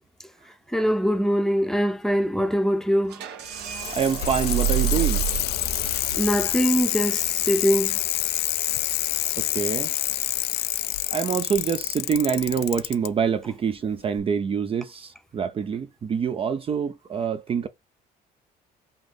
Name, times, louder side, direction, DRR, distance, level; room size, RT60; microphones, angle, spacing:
voice 1, 0.7-3.2 6.1-8.0, equal, ahead, 0.7 m, -23 dB
sound 1, 3.0-8.5, right 8 dB, 80° right, 1.2 m, -41 dB
Bicycle, 3.5-13.1 14.2-14.3, left 15 dB, 70° left, 0.5 m, -27 dB
voice 2, 3.9-5.3 9.4-9.9 11.1-17.7, right 7 dB, 35° right, 0.5 m, -26 dB
sound 2, 3.9-6.6, right 12 dB, 55° right, 1.8 m, -27 dB
5.5 x 2.6 x 3.5 m
cardioid pair, 110°, 17 cm